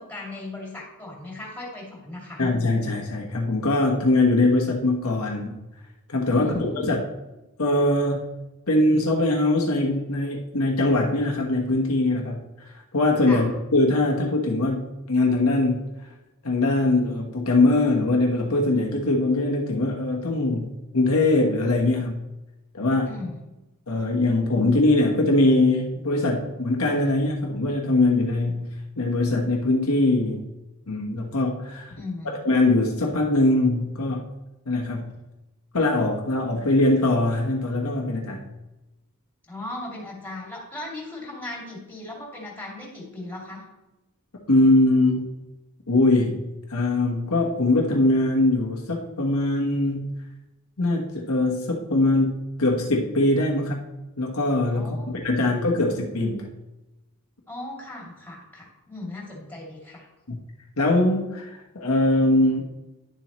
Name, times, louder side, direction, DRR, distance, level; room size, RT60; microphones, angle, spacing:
voice 1, 0.0-2.4 6.3-7.0 13.2-13.5 23.1-23.4 31.9-32.4 39.4-43.7 54.7-55.5 57.5-60.1, left 2 dB, 10° left, -3 dB, 2.7 m, -37 dB
voice 2, 2.4-5.6 6.1-7.0 7.6-8.3 8.7-12.4 12.9-15.9 16.4-22.2 22.7-23.1 23.9-30.4 30.9-31.9 32.4-34.3 34.7-35.1 35.7-38.4 44.5-45.3 45.9-46.4 46.7-50.1 50.8-53.8 54.2-56.5 60.3-60.4 60.8-62.6, left 2 dB, 70° left, -1 dB, 1.3 m, -22 dB
11.0 x 7.3 x 3.1 m, 1.0 s
head